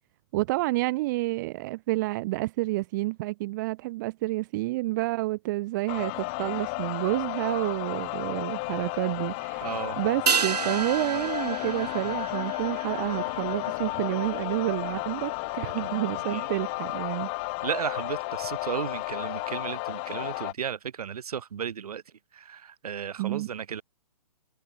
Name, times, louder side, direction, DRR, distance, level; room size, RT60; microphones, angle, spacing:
voice 1, 0.3-9.7 10.0-17.3 23.2-23.5, right 20 dB, 30° right, 0.7 m, -29 dB
sound 1, 5.9-20.5, left 31 dB, 15° left, 0.3 m, -33 dB
voice 2, 9.6-10.0 15.8-16.5 17.6-22.0 22.3-23.8, right 8 dB, 70° right, 1.9 m, -34 dB
sound 2, 10.3-15.0 15.2-15.3, right 6 dB, 85° right, 1.3 m, -32 dB
hypercardioid pair, 150°, 20 cm